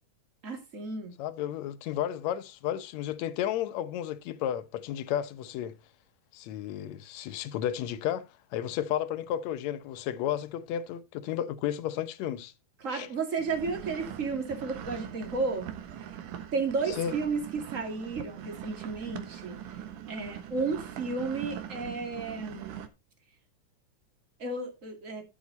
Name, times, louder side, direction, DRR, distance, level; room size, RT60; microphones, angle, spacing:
voice 1, 0.4-1.1 12.8-15.7 16.5-19.6 20.1-22.9 24.4-25.2, right 4 dB, 25° right, 2.4 m, -33 dB
voice 2, 1.2-5.7 6.3-12.5 12.9-13.1 17.0-17.2, left 11 dB, 70° left, 2.0 m, -33 dB
sound 1, 13.4-22.9, right 10 dB, 80° right, 2.7 m, -42 dB
12.5 x 7.2 x 4.1 m
omnidirectional pair, 3.5 m